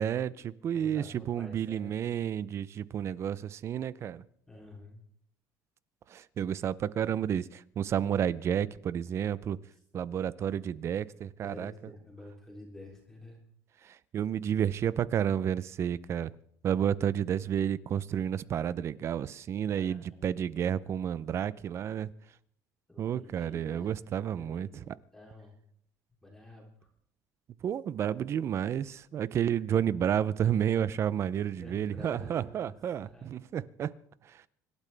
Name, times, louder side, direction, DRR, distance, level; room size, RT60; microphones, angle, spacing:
voice 1, 0.0-4.3 6.1-9.6 9.9-11.7 13.8-16.3 16.6-22.1 23.0-25.0 27.6-33.9 34.3-34.5, right 9 dB, 35° right, 0.5 m, -31 dB
voice 2, 0.7-1.9 4.5-5.0 6.4-6.5 11.4-13.4 19.6-20.1 22.9-23.9 24.4-25.6 26.2-26.7 31.5-32.7 33.0-33.3, left 1 dB, 5° left, 3.3 m, -49 dB
26.0 x 12.5 x 3.4 m
cardioid pair, 145°, 8 cm